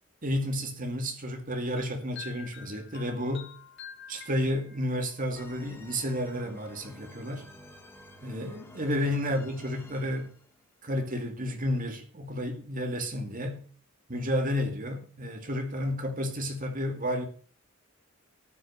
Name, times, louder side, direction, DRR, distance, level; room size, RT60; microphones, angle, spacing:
voice 1, 0.2-3.5 4.1-7.5 8.2-10.3 10.8-13.7 14.1-17.3, equal, 40° right, 2.4 m, -31 dB
sound 1, 1.8-5.3, left 6 dB, 60° left, 2.8 m, -47 dB
sound 2, 5.3-10.6, left 1 dB, 10° left, 1.8 m, -51 dB
13.0 x 6.3 x 6.9 m
head